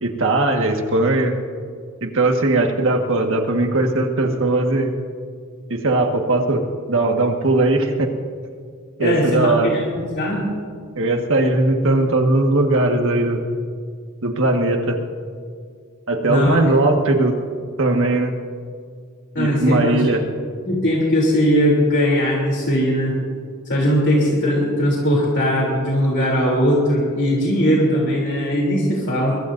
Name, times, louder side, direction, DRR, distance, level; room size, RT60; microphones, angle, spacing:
voice 1, 0.0-1.3 2.0-4.9 5.7-8.1 9.0-9.7 10.9-13.4 14.2-15.0 16.1-17.3 17.8-18.3 19.4-20.3, right 2 dB, 60° right, 3 dB, 1.7 m, -19 dB
voice 2, 9.0-10.5 16.2-16.6 19.3-20.0 20.6-23.2 23.7-29.4, equal, 55° left, -3 dB, 3.3 m, -19 dB
23.5 x 23.0 x 2.7 m, 2.1 s
head